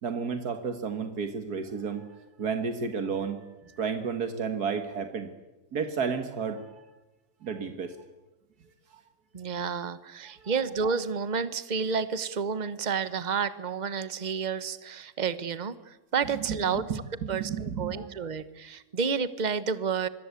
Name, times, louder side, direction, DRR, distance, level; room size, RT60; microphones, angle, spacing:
voice 1, 0.0-5.3 5.7-6.9 7.4-8.0 10.4-10.7 16.5-18.1, right 6 dB, 80° right, 8 dB, 2.1 m, -32 dB
voice 2, 9.3-17.0 17.3-20.1, right 6 dB, 30° right, 14 dB, 1.1 m, -30 dB
26.0 x 22.0 x 8.4 m, 1.0 s
omnidirectional pair, 1.6 m